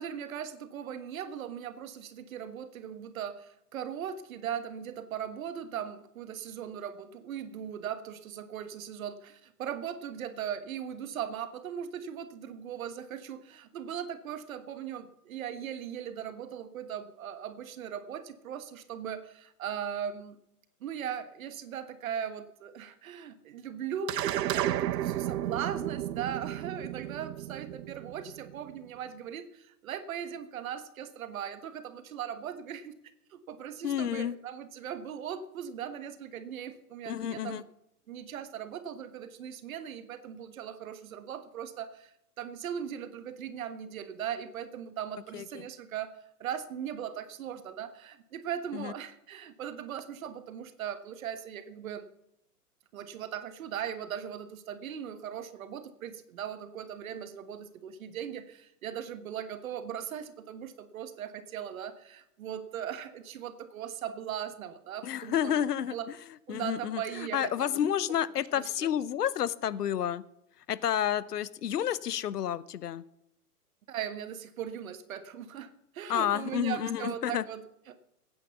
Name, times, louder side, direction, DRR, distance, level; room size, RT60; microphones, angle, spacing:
voice 1, 0.0-20.4 20.8-32.9 33.3-37.6 38.1-46.1 46.4-52.1 52.9-65.6 65.9-66.1 66.5-67.8 68.6-68.9 73.9-75.7 75.9-78.0, right 9 dB, 60° right, 11 dB, 1.5 m, -39 dB
sound 1, 24.1-28.7, right 12 dB, 85° right, 0.6 m, -33 dB
voice 2, 33.8-34.4 37.1-37.6 45.3-45.4 48.7-48.9 65.0-66.0 66.5-70.2 70.7-73.0 76.1-77.4, left 10 dB, 75° left, 19 dB, 0.9 m, -30 dB
16.0 x 9.4 x 7.1 m, 0.82 s
hypercardioid pair, 125°, 47 cm